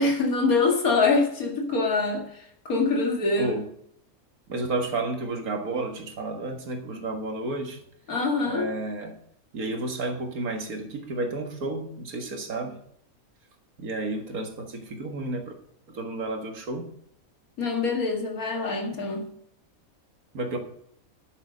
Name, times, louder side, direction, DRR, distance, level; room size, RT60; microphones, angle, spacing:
voice 1, 0.0-3.5 8.1-8.7 17.6-19.3, left 3 dB, 75° left, 2.5 m, -24 dB
voice 2, 4.5-7.8 8.5-9.2 9.5-12.8 13.8-15.5 15.9-16.9 20.3-20.6, right 2 dB, 80° right, 2.1 m, -31 dB
10.5 x 8.7 x 5.1 m
omnidirectional pair, 1.5 m